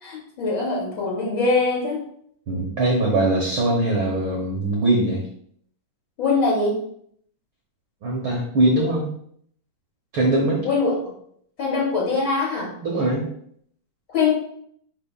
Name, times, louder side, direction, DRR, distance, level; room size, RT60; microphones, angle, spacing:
voice 1, 0.0-2.0 6.2-6.8 10.6-11.0 11.6-12.7 14.1-14.3, left 4 dB, 40° left, -4 dB, 3.2 m, -22 dB
voice 2, 2.5-5.2 8.0-9.0 10.1-10.6 12.8-13.3, right 1 dB, 60° right, -1 dB, 1.4 m, -21 dB
10.5 x 5.0 x 2.4 m, 0.66 s
omnidirectional pair, 3.8 m